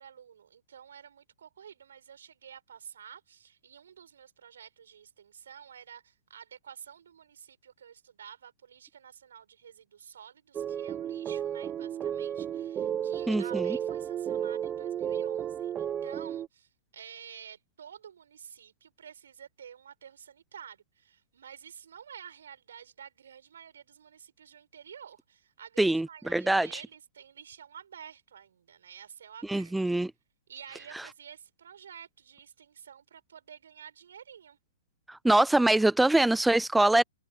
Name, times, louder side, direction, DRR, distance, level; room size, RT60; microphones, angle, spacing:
voice 1, 0.0-29.7 30.5-34.6, right 8 dB, 75° right, 7.3 m, -50 dB
sound 1, 10.5-16.5, right 9 dB, 20° right, 0.9 m, -33 dB
voice 2, 13.3-13.7 25.8-26.8 29.5-30.1 30.9-31.1 35.1-37.0, right 2 dB, 5° right, 0.4 m, -24 dB
hypercardioid pair, 130°, 0 cm